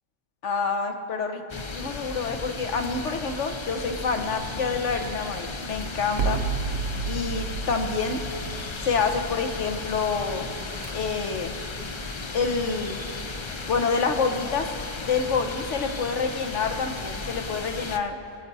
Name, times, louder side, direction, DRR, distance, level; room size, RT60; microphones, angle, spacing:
voice 1, 0.4-6.4 7.0-8.2 8.8-10.5 10.9-11.5 12.3-13.0 13.7-14.7 15.0-18.2, left 5 dB, 70° left, 5 dB, 1.3 m, -27 dB
sound 1, 1.5-18.0, left 3 dB, 40° left, 0.4 m, -35 dB
sound 2, 4.1-5.4 6.2-9.5 10.6-10.9, right 6 dB, 60° right, 0.8 m, -32 dB
22.5 x 8.2 x 4.1 m, 2.9 s
omnidirectional pair, 1.3 m